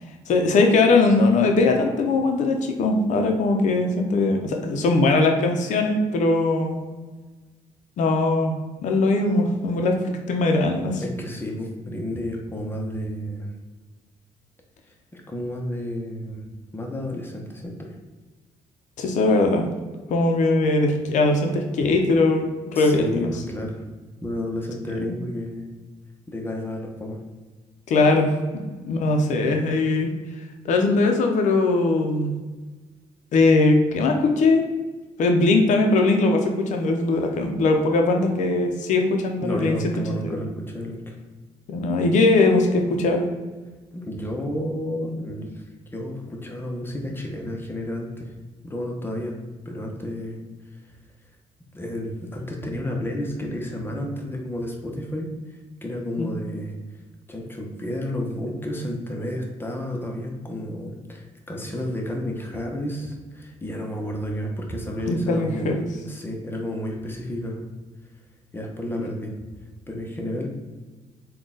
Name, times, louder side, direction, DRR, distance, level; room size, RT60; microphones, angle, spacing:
voice 1, 0.3-6.8 8.0-8.5 8.8-10.0 10.3-11.0 19.0-19.7 20.1-23.3 25.0-25.1 27.9-28.3 28.8-30.1 30.6-32.3 33.3-34.7 35.2-39.9 40.2-40.4 41.7-43.3 56.2-56.3 65.1-65.8, left 2 dB, 70° left, 3 dB, 0.6 m, -20 dB
voice 2, 11.0-13.5 15.1-16.4 16.7-17.9 22.7-23.8 24.2-25.7 26.3-27.2 39.4-41.2 43.9-45.6 45.9-48.3 48.6-49.4 49.6-50.4 50.7-50.8 51.7-56.7 57.3-65.7 66.1-67.6 68.5-69.3 69.9-70.5, left 1 dB, 15° left, 1 dB, 0.7 m, -31 dB
3.8 x 2.3 x 3.7 m, 1.3 s
cardioid pair, 85°, 13 cm